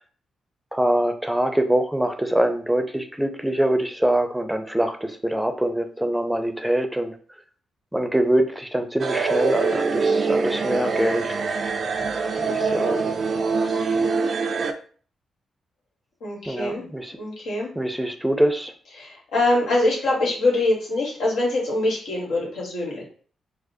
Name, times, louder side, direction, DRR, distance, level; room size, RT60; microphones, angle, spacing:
voice 1, 0.7-7.2 7.9-11.4 12.5-13.0 16.5-17.2 17.8-18.7, right 1 dB, 5° right, 6 dB, 0.5 m, -24 dB
sound 1, 9.0-14.7, right 4 dB, 55° right, 0.4 m, -24 dB
voice 2, 16.2-16.8 17.2-17.7 19.0-23.0, left 2 dB, 90° left, -4 dB, 1.3 m, -24 dB
4.8 x 2.0 x 2.7 m, 0.43 s
cardioid pair, 65°, 0 cm